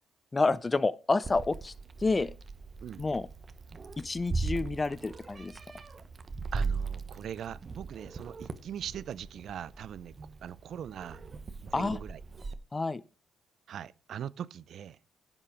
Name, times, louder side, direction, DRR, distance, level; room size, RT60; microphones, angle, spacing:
voice 1, 0.3-1.7 2.0-2.3 3.0-3.3 4.0-5.5 11.7-12.0 12.7-13.0, left 3 dB, 25° left, 0.5 m, -29 dB
Meow, 1.2-12.5, right 4 dB, 35° right, 1.0 m, -39 dB
voice 2, 6.5-10.1 10.4-11.2 11.6-12.2 13.7-15.0, right 9 dB, 65° right, 0.5 m, -41 dB
10.5 x 7.4 x 4.9 m
cardioid pair, 90°, 0 cm